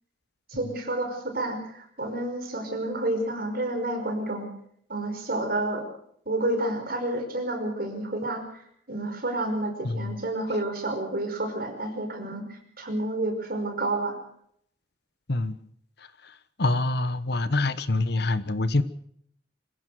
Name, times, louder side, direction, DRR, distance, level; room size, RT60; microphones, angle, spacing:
voice 1, 0.5-4.5 4.9-5.8 6.3-14.2, right 1 dB, 55° right, 5 dB, 5.4 m, -30 dB
voice 2, 9.8-10.1 15.3-15.6 16.2-18.8, left 2 dB, 60° left, 13 dB, 1.3 m, -26 dB
25.5 x 15.5 x 6.5 m, 0.68 s
head